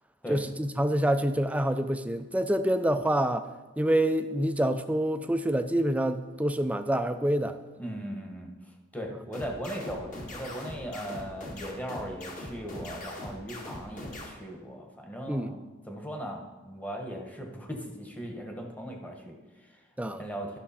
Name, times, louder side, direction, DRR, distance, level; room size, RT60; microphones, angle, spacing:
voice 1, 0.3-3.5 3.8-7.6 15.3-15.5 20.0-20.2, right 1 dB, 5° right, 9 dB, 0.4 m, -27 dB
voice 2, 7.8-19.8 20.1-20.6, equal, 10° left, 1 dB, 1.2 m, -38 dB
sound 1, 9.3-14.3, left 1 dB, 40° left, 1.7 m, -41 dB
13.0 x 6.1 x 4.2 m, 1.2 s
head